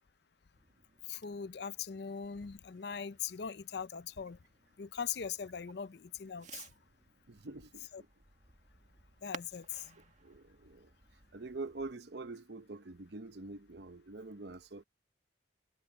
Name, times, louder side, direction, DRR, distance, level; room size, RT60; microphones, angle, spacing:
Fireworks, 0.5-11.9, right 5 dB, 40° right, 2.1 m, -56 dB
voice 1, 1.1-4.4 4.8-6.6 7.9-8.0 9.2-10.0, left 7 dB, 60° left, 0.5 m, -41 dB
voice 2, 7.3-8.1 10.2-10.9 11.3-14.8, right 3 dB, 60° right, 0.9 m, -45 dB
head